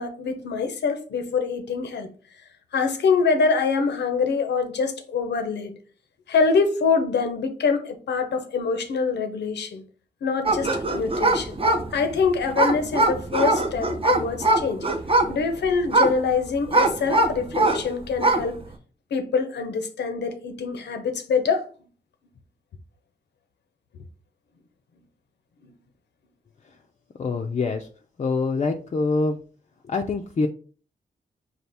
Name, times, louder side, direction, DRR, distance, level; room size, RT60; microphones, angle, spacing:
voice 1, 0.0-2.1 2.7-5.7 6.3-9.8 10.2-11.6 11.9-14.9 15.3-18.6 19.1-21.7 25.6-25.7, left 5 dB, 85° left, 0.6 m, -25 dB
sound 1, 10.4-17.9 18.1-18.5, right 2 dB, 30° right, 0.7 m, -22 dB
voice 2, 27.2-27.9 28.2-29.4 29.8-30.5, left 3 dB, 40° left, 0.4 m, -25 dB
4.1 x 2.4 x 3.4 m
cardioid pair, 55°, 17 cm